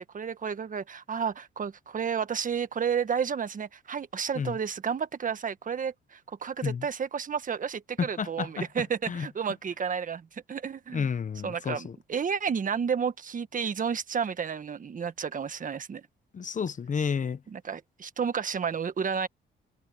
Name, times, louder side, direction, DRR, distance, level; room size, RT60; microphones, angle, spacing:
voice 1, 0.0-11.1 11.4-16.1 17.5-19.3, right 7 dB, 40° right, 1.5 m, -31 dB
voice 2, 8.0-8.6 9.1-9.3 10.9-11.9 16.3-17.4, left 6 dB, 40° left, 1.1 m, -31 dB
cardioid pair, 90°, 20 cm